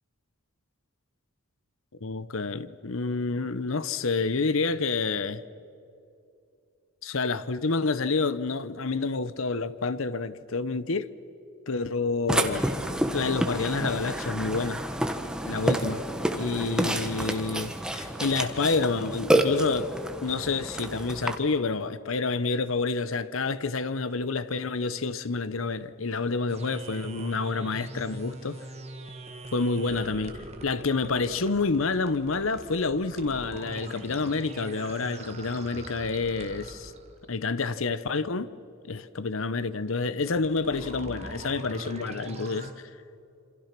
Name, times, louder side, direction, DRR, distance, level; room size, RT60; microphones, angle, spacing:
voice 1, 2.0-5.4 7.0-11.1 11.7-12.7 13.1-14.8 15.5-16.0 16.3-19.9 20.2-28.6 29.5-36.9 37.3-38.5 38.8-42.9, left 4 dB, 65° left, 0.9 m, -28 dB
Burping eructation, 12.3-21.3, right 1 dB, 5° right, 1.3 m, -29 dB
sound 1, 26.5-37.3 40.2-42.7, right 2 dB, 30° right, 1.9 m, -42 dB
27.5 x 26.0 x 6.0 m
head